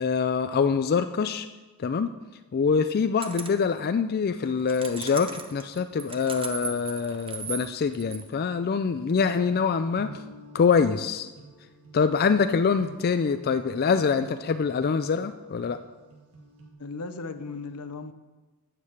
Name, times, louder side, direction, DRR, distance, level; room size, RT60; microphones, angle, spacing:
voice 1, 0.0-1.5 1.8-2.1 2.5-10.2 10.5-11.3 11.9-15.8, left 5 dB, 45° left, 9 dB, 0.3 m, -25 dB
sound 1, 3.2-3.7 4.5-8.3, right 6 dB, 25° right, 0.8 m, -38 dB
sound 2, 9.3-16.7, right 2 dB, 75° right, 1.8 m, -49 dB
voice 2, 16.8-18.1, left 3 dB, 85° left, 11 dB, 0.8 m, -36 dB
9.5 x 7.6 x 6.6 m, 1.2 s
head